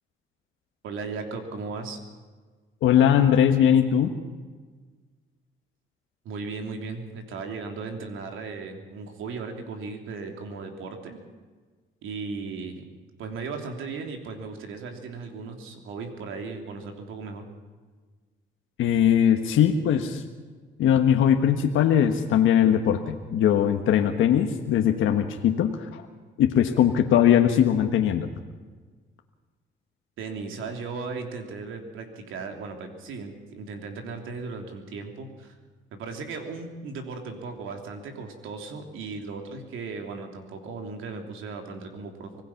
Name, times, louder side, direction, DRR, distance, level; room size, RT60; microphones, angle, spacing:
voice 1, 0.8-2.0 6.2-11.2 12.0-12.9 13.2-17.4 30.2-35.6 35.9-42.4, right 4 dB, 85° right, 4 dB, 3.2 m, -36 dB
voice 2, 2.8-4.1 18.8-20.2 20.8-26.0 26.4-28.3, left 9 dB, 85° left, 5 dB, 1.4 m, -20 dB
25.5 x 18.5 x 5.9 m, 1.4 s
cardioid pair, 90°, 20 cm